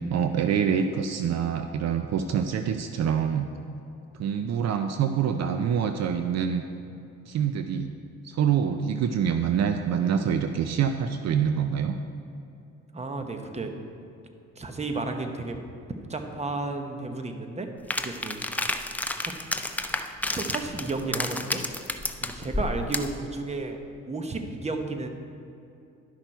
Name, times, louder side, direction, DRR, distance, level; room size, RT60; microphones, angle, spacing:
voice 1, 0.1-3.5 4.2-6.6 7.3-7.9 8.2-11.9, right 7 dB, 60° right, 7 dB, 0.5 m, -26 dB
voice 2, 12.9-13.7 14.6-15.6 16.1-17.7 18.0-18.8 19.2-19.4 20.3-21.6 22.2-23.8 24.1-25.1, right 3 dB, 20° right, 5 dB, 0.9 m, -32 dB
sound 1, 17.9-23.2, left 1 dB, 5° left, 0.5 m, -31 dB
11.5 x 5.9 x 4.5 m, 2.7 s
cardioid pair, 90°, 30 cm